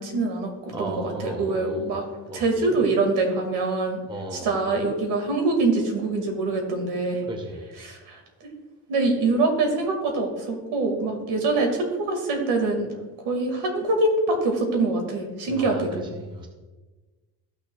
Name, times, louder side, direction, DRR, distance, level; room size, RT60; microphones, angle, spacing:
voice 1, 0.0-2.1 2.3-4.0 4.3-7.2 7.7-8.5 8.9-12.9 13.2-16.0, right 3 dB, 85° right, 3 dB, 2.2 m, -24 dB
voice 2, 0.7-1.8 2.3-2.4 4.1-4.5 7.3-7.6 15.5-15.8 16.1-16.5, right 1 dB, 10° right, 2 dB, 0.8 m, -35 dB
14.5 x 6.4 x 2.4 m, 1.2 s
cardioid pair, 165°, 39 cm